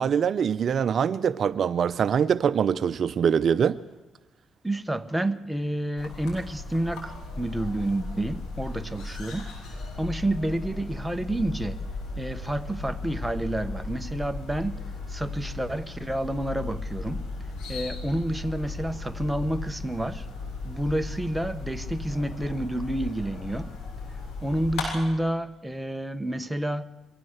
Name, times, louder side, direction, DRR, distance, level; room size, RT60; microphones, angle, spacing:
voice 1, 0.0-3.8, right 7 dB, 55° right, 0.6 m, -23 dB
voice 2, 4.6-9.5 10.0-11.8 12.2-14.8 15.1-17.2 17.7-20.3 20.6-23.7 24.4-26.8, right 1 dB, 5° right, 1.1 m, -29 dB
sound 1, 6.0-24.9, left 3 dB, 85° left, 6.9 m, -36 dB
23.0 x 16.0 x 8.0 m
cardioid pair, 90°, 0 cm